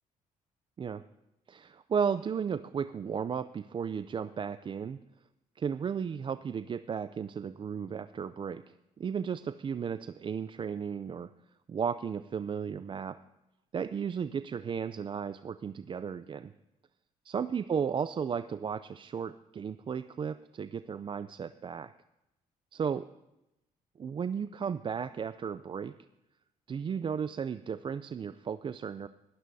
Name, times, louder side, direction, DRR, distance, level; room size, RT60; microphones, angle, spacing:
voice 1, 1.5-5.0 5.6-8.6 9.0-11.3 11.7-13.2 13.7-16.5 17.2-21.9 22.7-23.1 24.0-26.0 26.7-29.1, right 7 dB, 35° right, 12 dB, 0.4 m, -34 dB
20.5 x 11.5 x 2.7 m, 0.90 s
supercardioid pair, 75°, 15 cm